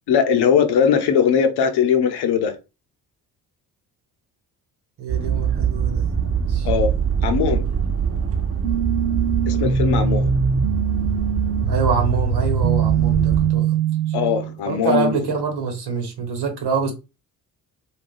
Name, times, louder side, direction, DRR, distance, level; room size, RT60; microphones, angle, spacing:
voice 1, 0.1-2.5 6.6-6.9 7.2-7.6 9.5-10.3 14.1-15.1, left 7 dB, 55° left, 0.8 m, -19 dB
voice 2, 5.0-6.0 6.5-6.7 11.7-13.8 14.1-14.2 14.6-16.9, right 5 dB, 55° right, 1.2 m, -25 dB
sound 1, 5.1-13.5, right 7 dB, 30° right, 0.9 m, -23 dB
sound 2, 8.6-14.6, right 6 dB, 80° right, 0.6 m, -22 dB
2.4 x 2.2 x 3.8 m
hypercardioid pair, 40°, 47 cm